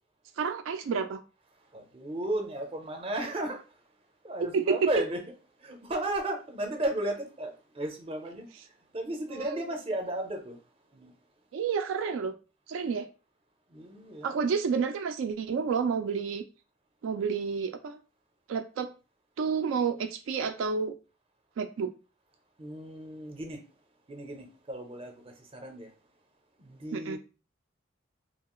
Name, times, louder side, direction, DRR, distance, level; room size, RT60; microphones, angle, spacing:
voice 1, 0.4-1.2 4.5-4.9 9.3-9.6 11.5-12.3 12.7-13.1 14.2-16.4 17.0-18.0 18.5-18.9 19.4-20.9 21.6-21.9 26.9-27.2, right 6 dB, 85° right, 0.3 m, -30 dB
voice 2, 1.7-3.6 4.2-5.2 5.6-8.5 8.9-10.6 10.9-11.1 13.7-14.4 22.6-23.6 24.1-25.1 25.5-25.9 26.6-27.2, right 1 dB, 30° right, 0.5 m, -34 dB
2.8 x 2.3 x 2.9 m
head